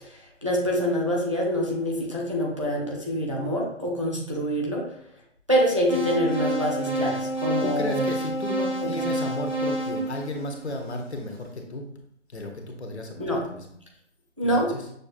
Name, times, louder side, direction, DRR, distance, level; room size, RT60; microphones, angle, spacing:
voice 1, 0.1-4.9 5.5-8.0 8.8-8.9 13.2-13.4 14.4-14.8, equal, 25° right, -2 dB, 0.5 m, -25 dB
sound 1, 5.9-11.0, right 1 dB, 70° right, 1.6 m, -29 dB
voice 2, 7.6-11.8 12.3-13.6 14.4-14.8, left 2 dB, 65° left, 2 dB, 1.0 m, -34 dB
6.5 x 2.5 x 2.6 m, 0.69 s
figure-of-eight pair, 170°, 36 cm